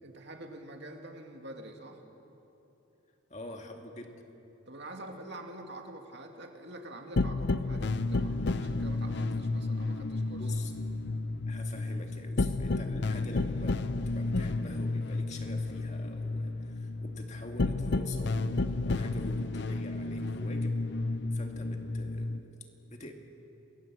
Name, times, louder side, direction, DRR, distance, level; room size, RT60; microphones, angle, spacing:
voice 1, 0.0-2.0 4.7-10.5, right 1 dB, 55° right, 3 dB, 2.5 m, -46 dB
voice 2, 3.3-4.1 10.4-10.7 11.5-20.8 21.3-22.6 22.8-23.1, left 1 dB, 30° left, 3 dB, 2.1 m, -45 dB
sound 1, 7.2-22.4, left 2 dB, 50° left, 0.6 m, -31 dB
28.5 x 20.0 x 7.7 m, 3.0 s
head